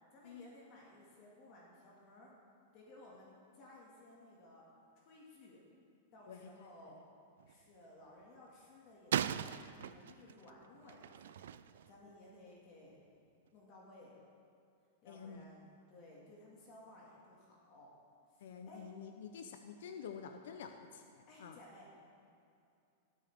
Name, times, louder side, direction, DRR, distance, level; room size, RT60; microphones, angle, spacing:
voice 1, 0.1-2.3 2.7-4.6 5.0-5.6 6.1-7.0 7.5-11.5 11.9-13.0 13.5-14.3 15.0-17.9 18.3-18.8 21.3-21.9, left 1 dB, 35° left, -4 dB, 2.1 m, -58 dB
sound 1, 7.4-7.6 9.1-11.9, right 9 dB, 80° right, 0.4 m, -39 dB
voice 2, 15.1-15.4 18.4-21.6, left 6 dB, 70° left, 6 dB, 0.7 m, -49 dB
17.5 x 8.6 x 3.6 m, 2.5 s
supercardioid pair, 165°, 0 cm